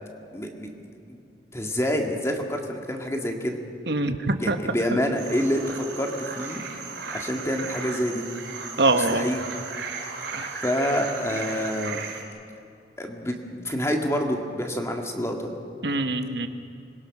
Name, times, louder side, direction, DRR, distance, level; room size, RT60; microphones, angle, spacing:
voice 1, 0.3-1.2 1.5-3.6 4.4-6.6 7.1-8.2 8.9-9.5 10.6-12.0 13.0-15.5, equal, 15° left, 2 dB, 2.0 m, -27 dB
voice 2, 3.9-4.6 8.8-9.3 10.3-10.5 15.8-16.5, right 2 dB, 65° right, 7 dB, 1.3 m, -24 dB
sound 1, 5.2-12.2, right 4 dB, 90° right, 4.2 m, -36 dB
26.0 x 21.5 x 6.1 m, 2.5 s
head